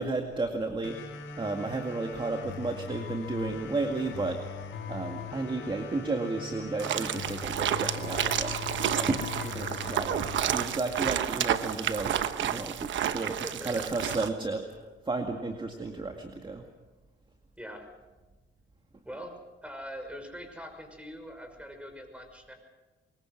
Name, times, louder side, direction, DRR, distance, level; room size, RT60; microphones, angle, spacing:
voice 1, 0.0-4.4 4.9-8.6 8.9-13.3 13.6-14.6 15.1-16.6, right 3 dB, 25° right, 4 dB, 2.1 m, -33 dB
sound 1, 0.8-11.8, left 6 dB, 75° left, 3.8 m, -41 dB
sound 2, 6.8-14.3, right 10 dB, 70° right, 1.1 m, -30 dB
voice 2, 9.4-9.7 13.0-13.8 17.6-17.9 19.0-19.3 19.6-22.5, equal, 5° right, 5 dB, 5.9 m, -43 dB
24.0 x 22.0 x 6.2 m, 1.2 s
cardioid pair, 90°, 20 cm